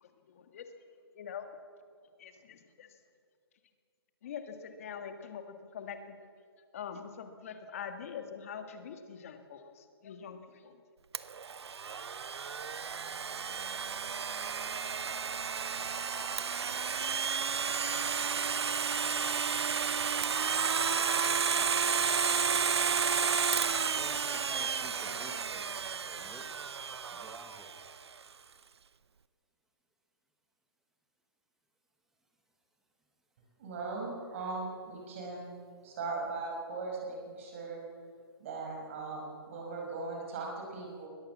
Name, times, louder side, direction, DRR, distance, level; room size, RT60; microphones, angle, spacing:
voice 1, 0.0-0.6 1.2-1.5 2.2-2.9 4.2-6.2 6.7-10.8, left 7 dB, 35° left, 7 dB, 1.8 m, -44 dB
Domestic sounds home sounds, 11.1-27.9, right 6 dB, 85° right, 0.8 m, -32 dB
voice 2, 23.9-25.6 26.0-26.7 27.1-27.7, right 1 dB, 5° right, 3 dB, 1.4 m, -51 dB
voice 3, 33.6-35.5 35.8-37.8 38.4-41.1, right 3 dB, 30° right, -1 dB, 5.9 m, -39 dB
21.0 x 20.5 x 7.4 m, 2.2 s
hypercardioid pair, 170°, 13 cm